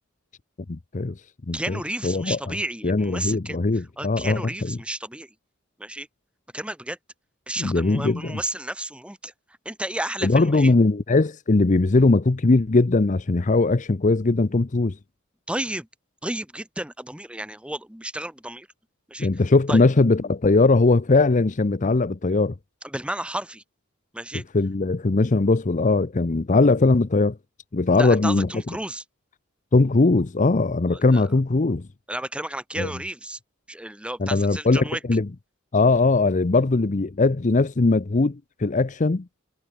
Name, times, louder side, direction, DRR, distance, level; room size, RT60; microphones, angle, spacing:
voice 1, 0.7-1.1 1.5-2.6 2.8-4.8 7.6-8.4 10.2-15.0 19.2-22.5 24.5-27.4 27.7-28.5 29.7-31.9 32.8-32.9 34.2-35.3 35.7-39.3, left 3 dB, 40° left, 0.6 m, -20 dB
voice 2, 1.5-3.6 4.0-5.3 5.8-6.1 6.5-7.0 7.5-9.3 9.6-10.7 15.5-15.9 16.2-18.7 19.1-19.3 19.7-19.8 22.8-23.6 24.1-24.4 28.0-29.0 30.9-31.2 32.1-33.4 33.7-35.0, right 1 dB, 5° right, 1.4 m, -32 dB
head